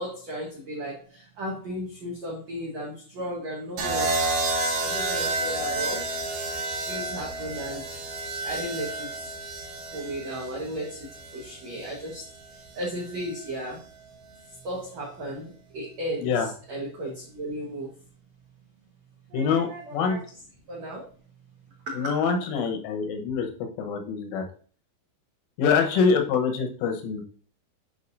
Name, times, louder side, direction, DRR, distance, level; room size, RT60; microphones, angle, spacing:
voice 1, 0.0-4.1 4.7-6.1 6.9-7.9 8.4-9.3 9.9-13.9 14.5-18.0 19.3-20.2 20.7-21.0 21.8-22.4, equal, 75° right, -3 dB, 1.5 m, -35 dB
sound 1, 3.8-11.9 13.1-13.5, right 2 dB, 55° right, 3.0 m, -30 dB
voice 2, 19.3-20.2 22.0-23.5 23.8-24.4 25.6-27.2, left 5 dB, 90° left, 4 dB, 3.7 m, -25 dB
10.0 x 5.2 x 2.7 m, 0.42 s
omnidirectional pair, 5.5 m